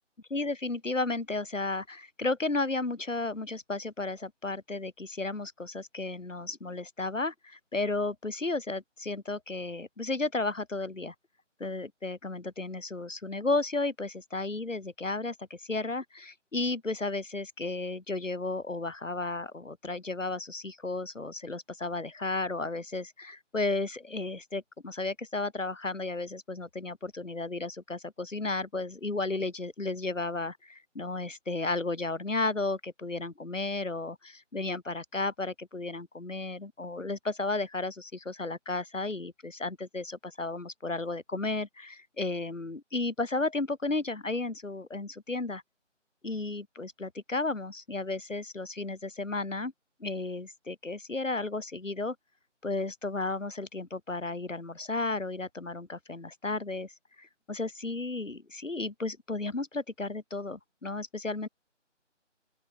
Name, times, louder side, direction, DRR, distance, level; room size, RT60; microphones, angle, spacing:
voice 1, 0.3-11.1 11.6-45.6 46.2-49.7 50.0-52.1 52.6-56.9 57.2-61.5, left 3 dB, 90° left, 1.4 m, -33 dB
open air
figure-of-eight pair, 160°, 37 cm